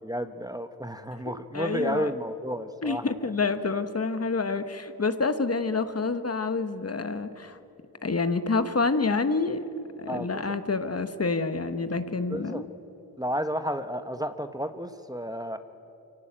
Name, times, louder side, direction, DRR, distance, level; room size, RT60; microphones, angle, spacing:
voice 1, 0.0-3.0 10.1-10.3 12.3-12.6 13.2-15.6, equal, 10° right, 9 dB, 1.1 m, -32 dB
voice 2, 1.5-2.1 2.8-7.6 8.0-9.6 10.0-12.7, left 4 dB, 40° left, 10 dB, 1.4 m, -28 dB
24.0 x 17.5 x 8.9 m, 3.0 s
cardioid pair, 50°, 39 cm